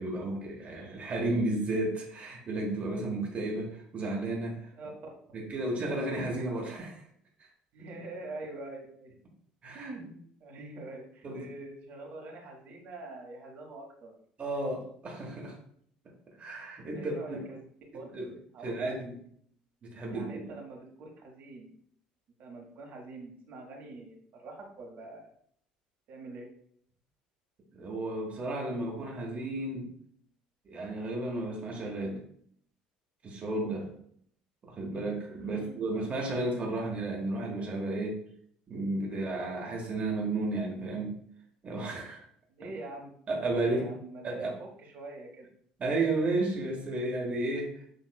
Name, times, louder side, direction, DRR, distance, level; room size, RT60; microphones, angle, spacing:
voice 1, 0.0-4.7 5.3-7.0 7.4-7.5 9.6-9.9 11.2-11.5 14.4-15.6 16.4-17.5 17.9-18.3 18.6-19.2 19.8-20.4 27.7-29.9 30.6-32.2 33.2-33.9 34.7-38.2 38.7-41.1 41.6-42.2 43.3-43.9 44.2-44.5 45.8-47.8, right 2 dB, 40° right, -1 dB, 1.2 m, -33 dB
voice 2, 7.7-9.1 9.7-14.1 16.8-17.7 17.9-18.1 18.5-18.9 20.1-21.7 22.4-25.3 26.1-26.5 35.4-35.8 42.6-43.1 43.6-45.5, right 2 dB, 55° right, 0 dB, 1.3 m, -44 dB
6.6 x 3.0 x 2.3 m, 0.63 s
hypercardioid pair, 65°, 4 cm